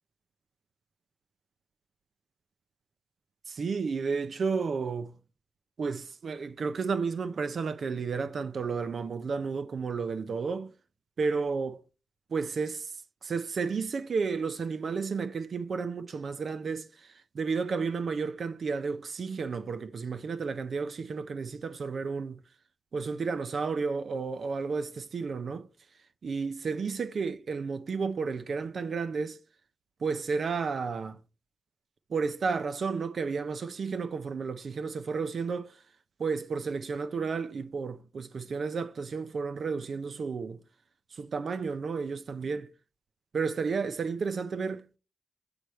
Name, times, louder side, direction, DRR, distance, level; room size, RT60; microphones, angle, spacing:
voice 1, 3.5-5.2 5.8-10.7 11.2-11.8 12.3-12.9 13.2-22.4 22.9-25.7 26.2-29.4 30.0-31.2 32.1-35.8 36.2-40.6 41.1-42.7 43.3-45.0, right 5 dB, 65° right, 0.5 m, -32 dB
7.9 x 3.4 x 4.2 m
cardioid pair, 70°, 0 cm